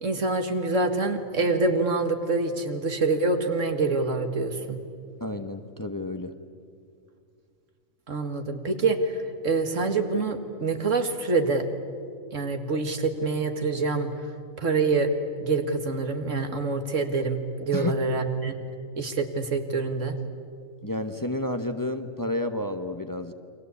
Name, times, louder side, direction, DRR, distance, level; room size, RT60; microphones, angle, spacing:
voice 1, 0.0-4.8 8.1-11.7 12.3-14.1 14.6-15.1 15.4-18.6 19.0-20.2, right 3 dB, 80° right, 6 dB, 2.2 m, -26 dB
voice 2, 5.2-6.3 17.7-18.0 20.8-23.3, left 1 dB, 15° left, 8 dB, 0.9 m, -31 dB
29.5 x 24.0 x 8.4 m, 2.3 s
omnidirectional pair, 1.3 m